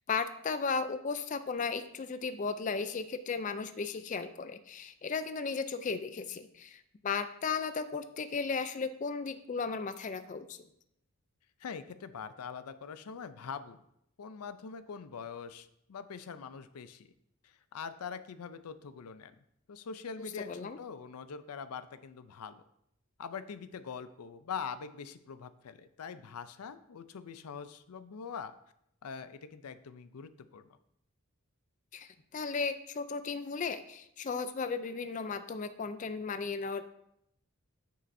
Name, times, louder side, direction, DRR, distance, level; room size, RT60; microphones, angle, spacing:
voice 1, 0.1-10.6 20.2-20.8 31.9-36.8, left 5 dB, 35° left, 11 dB, 0.3 m, -35 dB
voice 2, 11.6-13.8 14.2-17.1 17.4-19.3 19.7-22.6 23.2-28.5 29.0-30.7, left 6 dB, 90° left, 12 dB, 0.5 m, -43 dB
9.2 x 6.7 x 2.6 m, 0.77 s
head